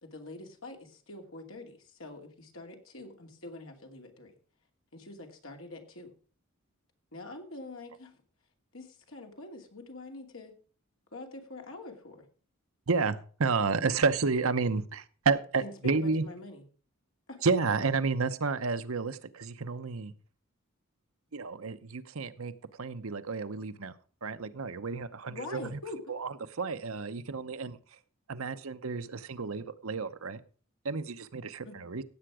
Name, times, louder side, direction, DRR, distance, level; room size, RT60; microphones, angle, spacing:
voice 1, 0.0-4.3 4.9-6.1 7.1-8.2 8.7-10.6 11.1-12.3 15.6-16.6 17.3-17.4 25.3-26.0 31.6-31.8, left 2 dB, 70° left, 3 dB, 2.6 m, -45 dB
voice 2, 12.9-16.2 17.4-20.1 21.3-22.5 22.8-23.9 24.2-25.6 26.1-27.8 28.3-30.4 30.8-32.0, right 4 dB, 80° right, 11 dB, 0.8 m, -31 dB
16.5 x 7.9 x 4.9 m, 0.42 s
head